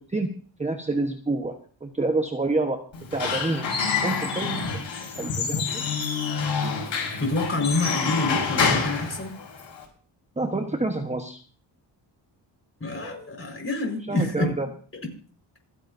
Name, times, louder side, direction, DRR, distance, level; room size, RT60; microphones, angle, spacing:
voice 1, 0.6-1.6 1.8-2.8 3.1-3.7 4.0-4.6 5.0-5.9 10.4-11.4 14.1-14.7, right 2 dB, 15° right, 4 dB, 1.1 m, -27 dB
Squeak / Wood, 2.9-9.8, left 5 dB, 85° left, 5.4 m, -27 dB
voice 2, 7.2-9.4 12.8-14.5, left 2 dB, 30° left, 3 dB, 4.7 m, -27 dB
27.0 x 9.7 x 2.7 m, 0.43 s
wide cardioid pair, 105°, 44 cm